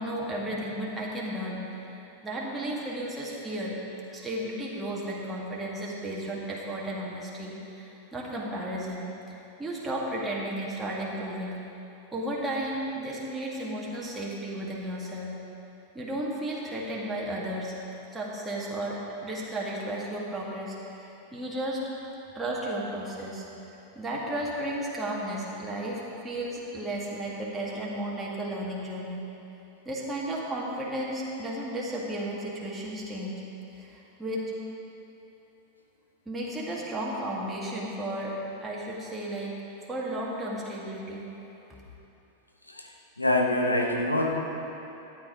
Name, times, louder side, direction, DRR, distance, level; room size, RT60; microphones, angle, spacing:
voice 1, 0.0-3.8 4.1-9.1 9.6-11.5 12.1-15.3 15.9-17.7 18.1-21.9 22.3-23.4 23.9-29.2 29.9-33.4 33.7-34.5 36.3-39.5 39.9-41.5, right 1 dB, 10° right, -5 dB, 2.1 m, -34 dB
voice 2, 43.2-44.4, left 1 dB, 85° left, 1 dB, 1.2 m, -25 dB
12.5 x 9.3 x 5.0 m, 2.9 s
figure-of-eight pair, 90°, 0 cm